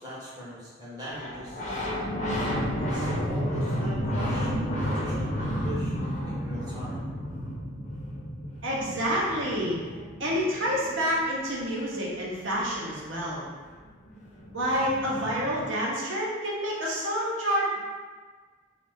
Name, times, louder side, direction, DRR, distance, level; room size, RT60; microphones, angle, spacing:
voice 1, 0.0-1.6 2.8-7.1, equal, 20° right, -7 dB, 0.6 m, -40 dB
sound 1, 1.1-11.5 13.6-13.7 13.8-15.6, equal, 40° left, 0.5 m, -31 dB
voice 2, 8.6-9.8 10.2-13.5 14.5-17.8, equal, 80° right, -5 dB, 0.8 m, -28 dB
2.6 x 2.4 x 3.5 m, 1.4 s
head